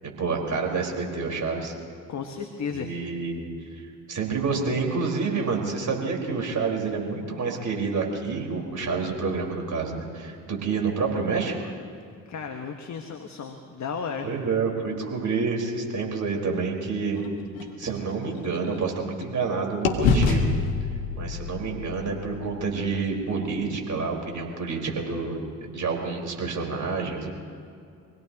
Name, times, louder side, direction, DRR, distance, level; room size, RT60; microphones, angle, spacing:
voice 1, 0.0-1.7 2.7-3.4 3.8-11.7 14.2-17.2 17.8-20.5 21.2-27.3, right 4 dB, 45° right, 0 dB, 4.9 m, -28 dB
voice 2, 2.1-3.1 12.3-14.3, left 6 dB, 45° left, 4 dB, 1.5 m, -34 dB
sound 1, 17.1-19.5 19.8-23.8, left 4 dB, 80° left, 1.5 m, -28 dB
26.0 x 17.5 x 3.0 m, 2.4 s
hypercardioid pair, 45°, 40 cm